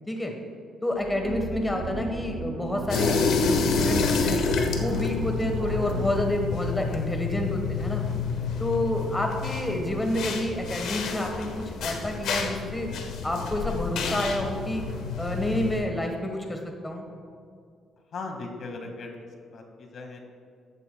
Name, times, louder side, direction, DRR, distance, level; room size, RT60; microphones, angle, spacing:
voice 1, 0.8-4.4 4.8-8.0 8.6-12.9 13.2-14.8 15.2-17.0, left 1 dB, 15° left, 2 dB, 1.3 m, -29 dB
sound 1, 1.0-6.2, right 3 dB, 80° right, 2.7 m, -36 dB
sound 2, 2.9-15.8, left 4 dB, 80° left, 1.2 m, -29 dB
voice 2, 18.1-19.2 19.5-20.2, left 3 dB, 60° left, 3 dB, 1.8 m, -38 dB
14.0 x 11.5 x 2.3 m, 2.3 s
cardioid pair, 90°, 0 cm